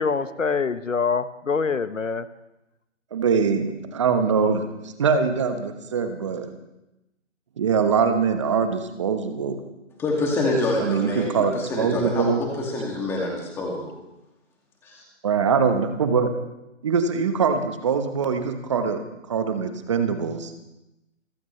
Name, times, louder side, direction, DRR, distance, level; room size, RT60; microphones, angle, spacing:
voice 1, 0.0-2.3, left 5 dB, 80° left, 13 dB, 1.3 m, -25 dB
voice 2, 3.1-6.5 7.6-9.6 10.8-12.4 15.2-16.3 16.8-19.0 19.3-20.5, right 6 dB, 25° right, 7 dB, 1.2 m, -23 dB
voice 3, 10.0-13.9 14.8-15.0, left 2 dB, 5° left, -1 dB, 2.3 m, -26 dB
27.5 x 14.5 x 3.3 m, 0.93 s
figure-of-eight pair, 155°, 37 cm